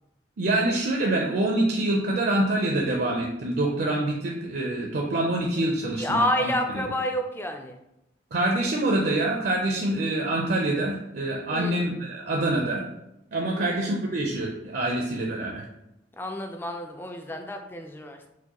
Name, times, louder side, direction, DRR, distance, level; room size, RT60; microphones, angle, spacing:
voice 1, 0.4-6.5 8.3-12.8 13.3-15.6, right 1 dB, 55° right, 0 dB, 0.5 m, -26 dB
voice 2, 5.9-7.8 11.5-12.0 13.6-13.8 16.2-18.3, left 1 dB, 10° left, 5 dB, 0.3 m, -29 dB
4.6 x 2.1 x 2.9 m, 0.87 s
head